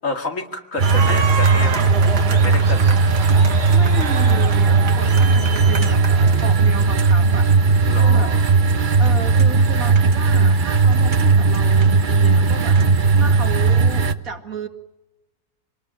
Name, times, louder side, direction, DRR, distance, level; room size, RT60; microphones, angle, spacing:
voice 1, 0.0-2.0 2.3-3.0 7.8-8.5, left 2 dB, 50° left, 3 dB, 2.6 m, -29 dB
sound 1, 0.8-14.1, right 4 dB, 35° right, 0.9 m, -16 dB
sound 2, 0.8-6.3, right 5 dB, 85° right, 2.2 m, -28 dB
voice 2, 3.7-6.0 6.4-7.5 7.9-8.6 9.0-12.8 13.1-14.7, right 4 dB, 60° right, 5 dB, 2.5 m, -33 dB
25.5 x 19.5 x 9.0 m, 1.0 s
omnidirectional pair, 1.7 m